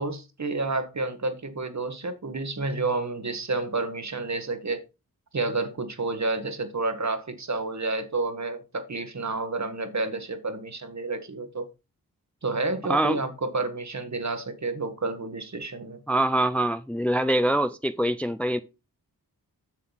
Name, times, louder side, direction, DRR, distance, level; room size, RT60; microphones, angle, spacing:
voice 1, 0.0-4.8 5.3-11.7 12.4-16.0, right 3 dB, 50° right, 1.5 m, -30 dB
voice 2, 12.8-13.2 16.1-18.6, right 1 dB, 5° left, 0.5 m, -24 dB
7.3 x 6.6 x 4.0 m
cardioid pair, 40°, 37 cm